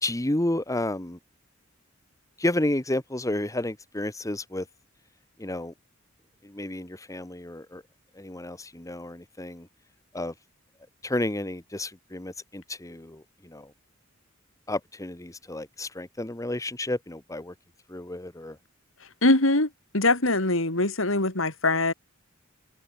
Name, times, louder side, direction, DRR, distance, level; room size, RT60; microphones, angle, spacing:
voice 1, 0.0-1.2 2.4-4.7 5.4-5.7 6.4-7.8 8.2-9.7 10.1-10.3 11.0-13.7 14.7-17.5 17.9-18.6, left 1 dB, 15° left, 1.3 m, -31 dB
voice 2, 19.2-19.7 19.9-21.9, left 2 dB, 75° left, 4.2 m, -22 dB
open air
head